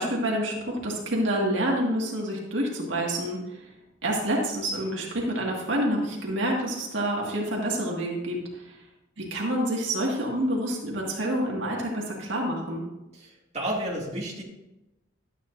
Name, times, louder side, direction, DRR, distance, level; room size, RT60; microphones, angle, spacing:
voice 1, 0.0-3.7 4.0-8.8 9.2-12.8, right 1 dB, 85° right, -2 dB, 1.9 m, -28 dB
voice 2, 13.1-14.4, right 1 dB, 35° right, -4 dB, 2.2 m, -32 dB
12.5 x 8.8 x 2.6 m, 0.96 s
head